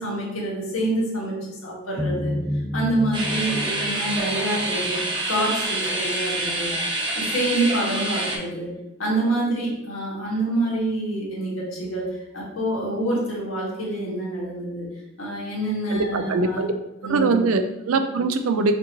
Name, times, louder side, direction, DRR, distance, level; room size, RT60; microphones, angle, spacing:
voice 1, 0.0-2.4 2.7-5.0 5.3-6.7 7.2-8.7 9.0-12.1 12.3-14.9 15.2-16.7 17.0-17.4, right 1 dB, 80° left, -5 dB, 1.6 m, -26 dB
sound 1, 2.0-5.2, left 1 dB, 65° right, 1.6 m, -29 dB
sound 2, 3.1-8.4, right 2 dB, 25° right, 0.7 m, -27 dB
voice 2, 15.9-16.7 17.1-18.7, right 3 dB, 90° right, 8 dB, 0.4 m, -22 dB
6.0 x 2.7 x 2.9 m, 0.91 s
head